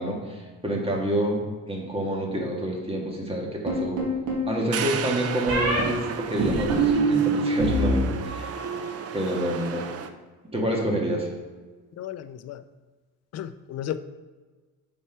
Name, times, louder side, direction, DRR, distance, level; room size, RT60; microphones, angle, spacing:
voice 1, 0.0-4.0 4.5-8.6 9.1-9.9 10.5-11.3, right 1 dB, 15° right, -1 dB, 1.7 m, -28 dB
sound 1, 3.7-4.5 5.5-5.8 6.4-7.9 8.2-8.8, right 2 dB, 80° right, 2.2 m, -24 dB
sound 2, 4.7-10.1, right 7 dB, 45° right, 0.6 m, -33 dB
voice 2, 12.0-12.6 13.3-14.0, left 11 dB, 50° left, 12 dB, 0.5 m, -34 dB
7.8 x 4.3 x 4.6 m, 1.4 s
cardioid pair, 115°, 34 cm